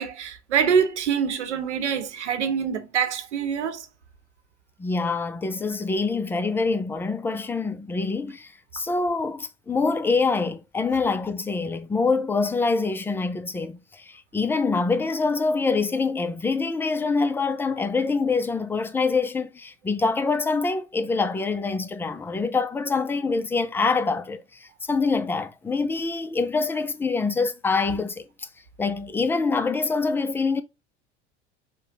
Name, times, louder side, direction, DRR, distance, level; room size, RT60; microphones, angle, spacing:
voice 1, 0.0-3.9, right 7 dB, 80° right, 0.9 m, -25 dB
voice 2, 4.8-28.5 28.8-30.6, left 4 dB, 5° left, 0.3 m, -25 dB
5.7 x 2.2 x 2.8 m
figure-of-eight pair, 75°, 34 cm